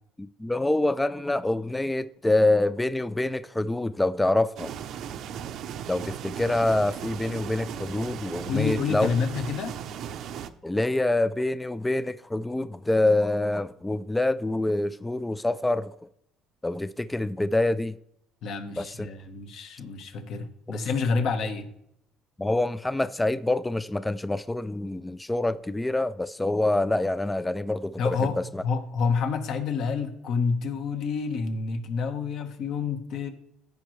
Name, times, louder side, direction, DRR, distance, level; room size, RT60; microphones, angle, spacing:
voice 1, 0.2-4.7 5.9-9.1 10.6-15.9 16.6-18.0 18.8-19.1 22.4-28.6, left 2 dB, 10° left, 0.3 m, -26 dB
sound 1, 4.6-10.5, right 9 dB, 55° right, 0.6 m, -37 dB
voice 2, 8.5-9.8 18.4-21.7 28.0-33.3, left 5 dB, 60° left, 1.2 m, -28 dB
15.0 x 5.2 x 3.2 m
cardioid pair, 125°, 0 cm